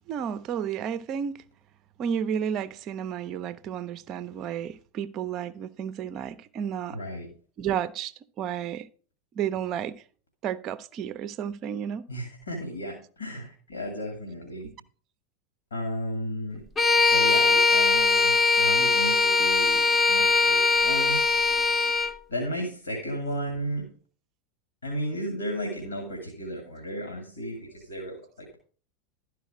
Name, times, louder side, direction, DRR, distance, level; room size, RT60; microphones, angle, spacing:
voice 1, 0.1-1.4 2.0-7.0 7.6-8.1 8.4-8.9 9.4-9.9 10.4-12.0 14.6-14.7, right 8 dB, 35° right, 0.5 m, -32 dB
voice 2, 6.9-7.3 12.1-14.7 15.7-16.6 17.0-21.2 22.3-23.9 24.8-28.2, equal, 75° left, 2.0 m, -34 dB
Bowed string instrument, 16.8-22.2, left 4 dB, 20° left, 0.7 m, -21 dB
12.0 x 4.7 x 4.9 m
figure-of-eight pair, 85°, 0 cm